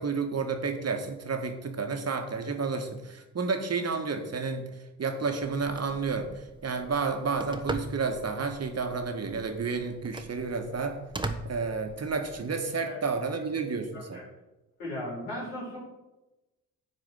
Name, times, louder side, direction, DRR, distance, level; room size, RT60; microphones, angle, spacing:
voice 1, 0.0-4.7 5.0-11.0 11.4-14.2, right 4 dB, 35° right, 5 dB, 1.7 m, -31 dB
Telephone, 5.4-12.4, right 2 dB, 10° right, 1.1 m, -40 dB
voice 2, 14.8-15.8, left 1 dB, 75° left, -5 dB, 4.6 m, -37 dB
10.0 x 4.9 x 8.1 m, 1.0 s
figure-of-eight pair, 40°, 45 cm